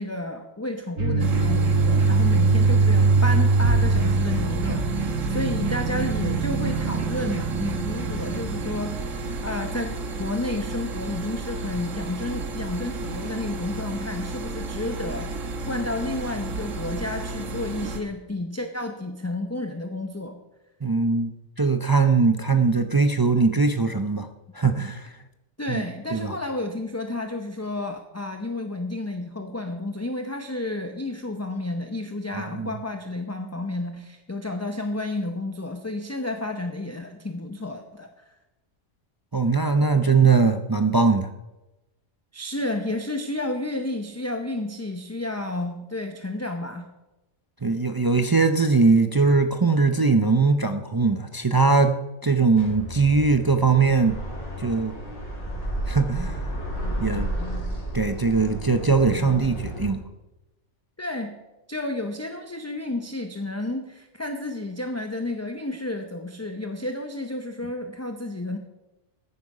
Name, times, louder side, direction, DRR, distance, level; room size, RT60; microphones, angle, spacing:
voice 1, 0.0-20.4 25.6-38.3 42.3-46.9 61.0-61.4 61.7-68.6, left 2 dB, 15° left, 5 dB, 0.6 m, -31 dB
sound 1, 1.0-9.3, right 3 dB, 65° right, 2.3 m, -22 dB
sound 2, 1.2-18.0, right 2 dB, 90° right, 1.6 m, -33 dB
voice 2, 20.8-21.3 21.6-24.3 24.5-25.1 25.7-25.8 26.1-26.3 32.3-32.7 39.3-41.3 47.6-54.2 54.6-55.0 55.9-56.6 57.0-57.3 57.9-60.0, right 4 dB, 35° right, 7 dB, 0.3 m, -21 dB
sound 3, 52.6-59.9, right 1 dB, 65° left, 4.4 m, -32 dB
14.0 x 9.4 x 4.9 m, 1.0 s
omnidirectional pair, 1.3 m